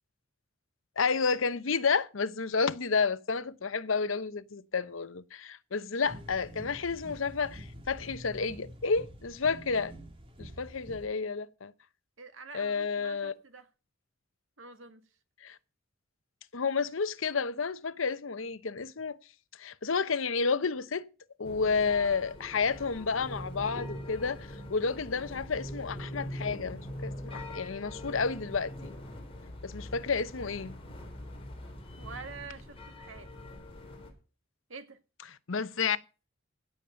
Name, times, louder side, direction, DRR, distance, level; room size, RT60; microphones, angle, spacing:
voice 1, 1.0-9.9 10.4-11.7 12.5-13.3 15.4-15.6 16.5-19.2 19.6-21.0 21.4-28.9 29.6-30.8 35.3-36.0, left 5 dB, 80° left, 0.8 m, -31 dB
sound 1, 6.0-11.1, equal, 25° right, 2.5 m, -47 dB
voice 2, 12.2-13.7 14.6-15.0 32.0-33.3 34.7-35.0, right 4 dB, 85° right, 2.0 m, -46 dB
sound 2, 21.4-34.1, left 1 dB, 30° left, 4.3 m, -43 dB
16.5 x 7.3 x 5.3 m
head